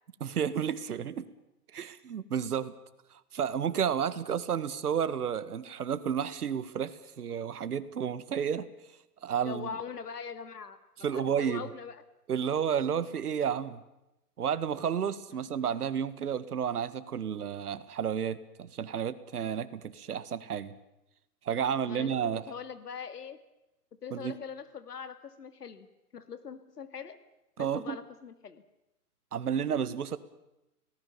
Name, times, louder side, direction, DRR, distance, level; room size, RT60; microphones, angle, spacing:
voice 1, 0.2-1.3 1.7-2.7 3.3-8.7 9.2-9.7 11.0-11.6 12.3-13.8 14.4-20.7 21.5-22.4 24.1-24.3 27.6-28.0 29.3-30.2, right 8 dB, 75° right, 14 dB, 1.8 m, -31 dB
voice 2, 9.4-12.0 21.7-23.4 24.0-25.9 26.1-27.2 27.6-28.6, left 6 dB, 80° left, 11 dB, 2.2 m, -42 dB
30.0 x 18.5 x 7.2 m, 0.92 s
hypercardioid pair, 125°, 46 cm